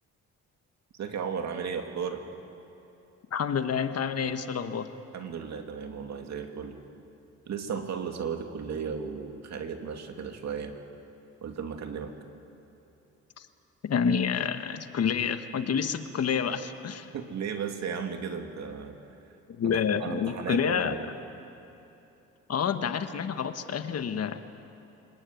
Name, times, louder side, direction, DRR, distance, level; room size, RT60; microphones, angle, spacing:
voice 1, 0.9-2.2 5.1-6.8 7.5-10.8 11.4-12.1 17.1-19.0 19.6-21.1, right 6 dB, 60° right, 5 dB, 2.6 m, -35 dB
voice 2, 3.3-4.9 13.4-13.5 13.8-17.1 19.6-20.9 22.5-24.4, left 7 dB, 55° left, 8 dB, 1.5 m, -28 dB
25.0 x 21.0 x 9.4 m, 2.9 s
cardioid pair, 90°, 30 cm